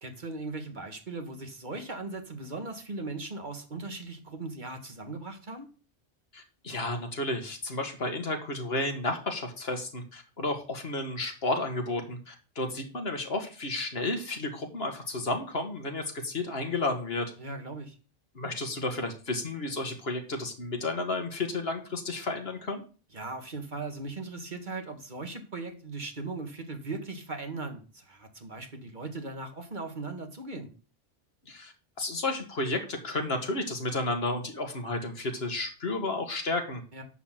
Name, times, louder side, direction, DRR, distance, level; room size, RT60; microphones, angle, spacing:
voice 1, 0.0-5.7 17.4-18.0 23.1-30.7 36.9-37.0, right 3 dB, 45° right, 5 dB, 1.7 m, -38 dB
voice 2, 6.3-17.3 18.4-22.8 31.5-31.7 32.0-36.8, left 2 dB, 70° left, 5 dB, 1.9 m, -32 dB
11.0 x 4.1 x 7.5 m, 0.35 s
omnidirectional pair, 1.1 m